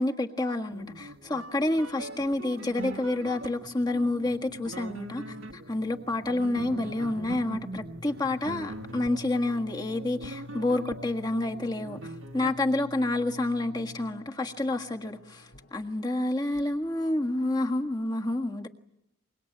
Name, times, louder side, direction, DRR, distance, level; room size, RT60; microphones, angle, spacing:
voice 1, 0.0-12.0 12.3-18.7, left 2 dB, 20° left, 2 dB, 1.6 m, -29 dB
sound 1, 0.7-12.5, right 1 dB, 85° right, 1.7 m, -42 dB
sound 2, 1.8-2.3 2.9-17.9, left 2 dB, 80° left, 3.1 m, -49 dB
25.0 x 22.5 x 8.8 m, 0.79 s
head